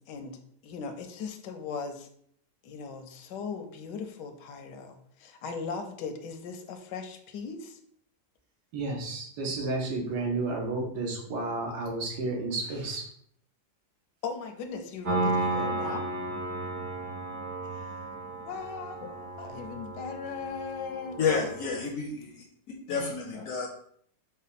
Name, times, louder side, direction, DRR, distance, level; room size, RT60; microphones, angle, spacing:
voice 1, 0.0-2.1 2.6-7.8 14.2-16.1 17.7-18.0 18.4-21.2, left 5 dB, 85° left, 6 dB, 1.3 m, -38 dB
voice 2, 8.7-13.0, right 3 dB, 75° right, 0 dB, 1.6 m, -31 dB
Piano, 15.1-21.8, right 2 dB, 55° right, 1.2 m, -33 dB
voice 3, 21.2-22.5 22.9-23.7, left 5 dB, 65° left, 2 dB, 0.8 m, -30 dB
4.9 x 2.2 x 4.0 m, 0.64 s
omnidirectional pair, 1.8 m